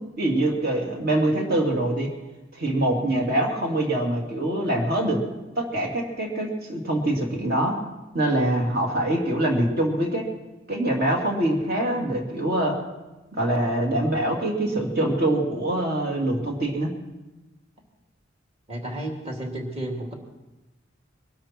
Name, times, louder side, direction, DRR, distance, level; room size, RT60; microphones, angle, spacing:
voice 1, 0.2-2.1 2.5-5.2 5.6-7.8 8.1-10.3 10.7-12.8 13.3-16.9, right 1 dB, 55° right, 0 dB, 2.8 m, -24 dB
voice 2, 18.7-20.1, right 1 dB, 30° right, 1 dB, 2.7 m, -32 dB
22.5 x 12.5 x 4.5 m, 1.1 s
head